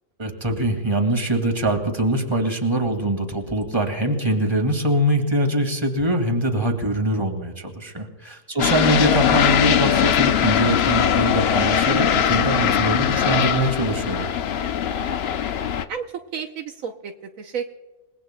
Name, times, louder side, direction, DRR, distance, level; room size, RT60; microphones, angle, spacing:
voice 1, 0.2-14.3, right 1 dB, 20° right, 3 dB, 2.0 m, -23 dB
sound 1, 8.6-15.8, left 9 dB, 60° left, 0.7 m, -20 dB
voice 2, 14.9-15.4 15.9-17.7, right 7 dB, 70° right, 5 dB, 1.2 m, -33 dB
28.5 x 18.5 x 2.2 m, 1.2 s
omnidirectional pair, 1.5 m